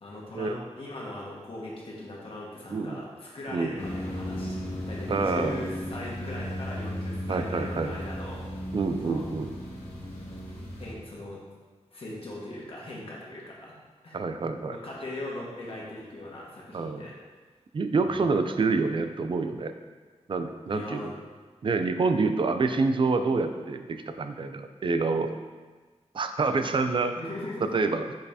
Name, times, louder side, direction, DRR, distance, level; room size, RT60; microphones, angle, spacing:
voice 1, 0.0-8.4 9.0-9.3 10.8-11.4 11.9-13.7 14.0-14.2 14.7-17.1 18.0-18.3 20.7-21.2 27.2-27.7, left 1 dB, 55° left, -5 dB, 1.5 m, -39 dB
voice 2, 2.7-3.0 3.5-3.7 5.1-5.7 7.3-7.9 8.7-9.5 14.1-14.8 16.7-17.0 17.7-19.7 20.3-21.1 21.6-25.3 26.1-27.2 27.7-28.0, right 4 dB, 45° right, 8 dB, 0.4 m, -27 dB
sound 1, 3.8-10.9, equal, 90° left, 1.3 m, -35 dB
6.3 x 5.5 x 2.8 m, 1.4 s
wide cardioid pair, 125°, 11 cm